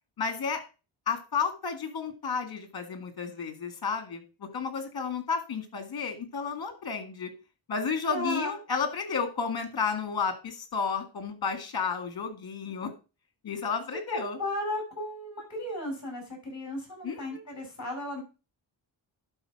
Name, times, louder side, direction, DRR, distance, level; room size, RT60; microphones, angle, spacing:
voice 1, 0.2-0.6 1.1-7.3 7.7-12.9 13.4-14.4 17.0-17.4, left 5 dB, 50° left, 9 dB, 2.2 m, -32 dB
voice 2, 8.1-8.5 14.1-18.2, left 1 dB, 35° left, 3 dB, 5.7 m, -35 dB
11.5 x 4.3 x 5.9 m, 0.32 s
wide cardioid pair, 130°, 46 cm